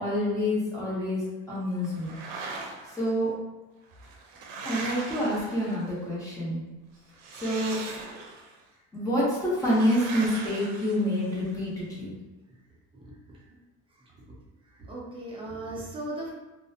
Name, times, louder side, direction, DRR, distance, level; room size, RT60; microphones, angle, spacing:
voice 1, 0.0-2.1 2.9-3.4 4.6-6.6 7.4-7.8 8.9-12.1, equal, 10° left, -8 dB, 0.8 m, -27 dB
sound 1, 1.8-3.1 3.9-6.1 7.1-8.6 9.6-11.5, right 3 dB, 90° right, 0.6 m, -40 dB
voice 2, 12.9-13.4 14.7-16.3, right 1 dB, 15° right, -4 dB, 0.4 m, -38 dB
2.4 x 2.1 x 2.6 m, 1.1 s
cardioid pair, 150°, 32 cm